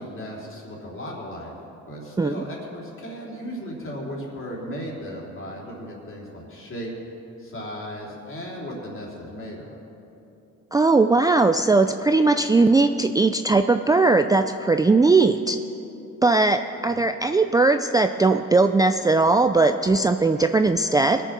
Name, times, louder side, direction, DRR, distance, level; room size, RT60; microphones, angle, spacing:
voice 1, 0.0-1.5 1.9-6.9 7.4-9.8 16.9-17.1, equal, 45° left, -3 dB, 3.8 m, -36 dB
voice 2, 10.7-15.6 16.2-21.2, right 3 dB, 15° right, 7 dB, 0.4 m, -19 dB
20.5 x 7.0 x 6.1 m, 2.9 s
cardioid pair, 90°, 30 cm